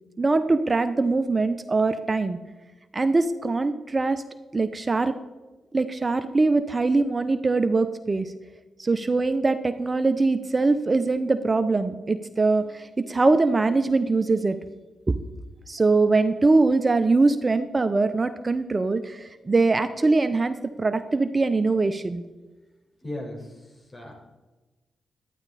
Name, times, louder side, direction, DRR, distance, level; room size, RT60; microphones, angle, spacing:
voice 1, 0.2-2.4 2.9-4.2 4.5-5.1 5.7-8.3 8.8-14.6 15.7-22.2, right 3 dB, 35° right, 10 dB, 0.7 m, -22 dB
voice 2, 23.0-24.1, left 1 dB, 35° left, 0 dB, 4.5 m, -37 dB
12.0 x 10.0 x 4.2 m, 1.2 s
supercardioid pair, 55°, 0 cm